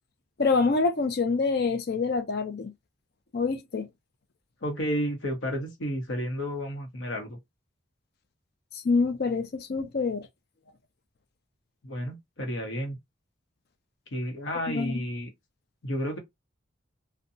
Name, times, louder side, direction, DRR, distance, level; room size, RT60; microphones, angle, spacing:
voice 1, 0.4-2.7 3.3-3.9 8.7-10.3 14.7-15.0, left 4 dB, 55° left, 0.5 m, -26 dB
voice 2, 4.6-7.4 11.8-13.0 14.1-15.3 15.8-16.2, equal, 75° left, 0.9 m, -31 dB
2.7 x 2.2 x 2.6 m
head